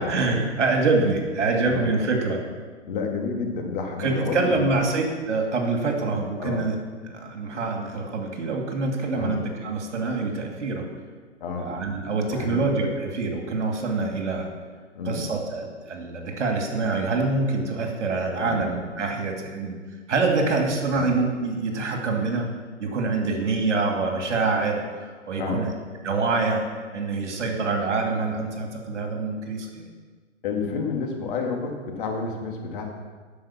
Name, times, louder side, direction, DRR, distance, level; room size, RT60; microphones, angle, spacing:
voice 1, 0.0-2.4 4.0-6.8 7.1-10.8 11.6-14.5 15.0-19.8 20.1-22.5 22.8-25.7 26.0-26.6 26.9-29.8, right 3 dB, 70° right, 2 dB, 2.7 m, -25 dB
voice 2, 1.7-2.0 2.8-4.7 6.4-6.6 9.2-9.3 11.4-11.7 12.3-12.6 14.9-15.3 18.4-18.6 20.9-21.1 25.3-25.6 30.4-32.8, left 4 dB, 45° left, 2 dB, 2.1 m, -30 dB
12.0 x 5.5 x 7.3 m, 1.5 s
hypercardioid pair, 145°, 36 cm